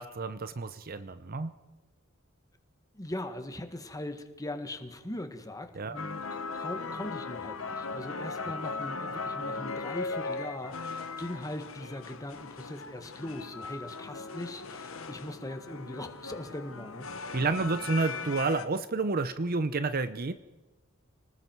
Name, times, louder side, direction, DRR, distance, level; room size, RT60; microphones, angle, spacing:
voice 1, 0.0-1.5 5.8-6.0 17.3-20.3, right 3 dB, 45° right, 12 dB, 0.8 m, -30 dB
voice 2, 2.9-17.1, left 1 dB, 15° left, 7 dB, 1.8 m, -40 dB
sound 1, 5.9-18.6, left 4 dB, 75° left, 1.3 m, -38 dB
29.5 x 19.5 x 4.7 m, 1.1 s
head